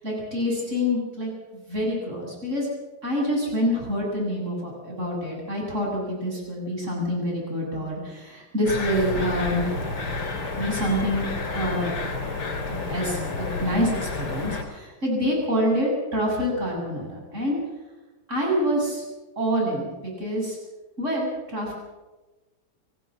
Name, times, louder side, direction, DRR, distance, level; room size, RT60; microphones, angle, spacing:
voice 1, 0.0-2.7 3.0-10.0 10.6-11.9 12.7-17.6 18.3-19.0 19.4-20.6 21.0-21.7, equal, 30° right, -2 dB, 8.0 m, -27 dB
sound 1, 8.7-14.6, left 3 dB, 55° left, 3.4 m, -30 dB
25.0 x 16.0 x 7.6 m, 1.2 s
omnidirectional pair, 2.4 m